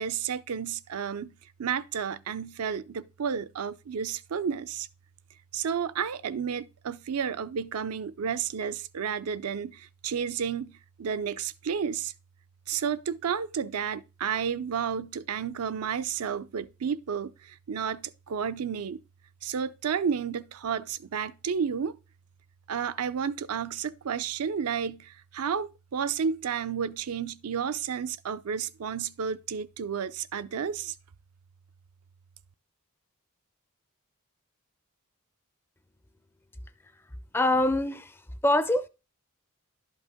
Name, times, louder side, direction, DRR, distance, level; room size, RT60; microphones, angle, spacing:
voice 1, 0.0-1.3 1.6-4.9 5.5-12.1 12.7-19.0 19.4-21.9 22.7-30.9, right 7 dB, 80° right, 0.5 m, -31 dB
voice 2, 37.3-38.1 38.4-38.9, left 1 dB, 10° left, 0.4 m, -24 dB
11.5 x 5.4 x 3.6 m
head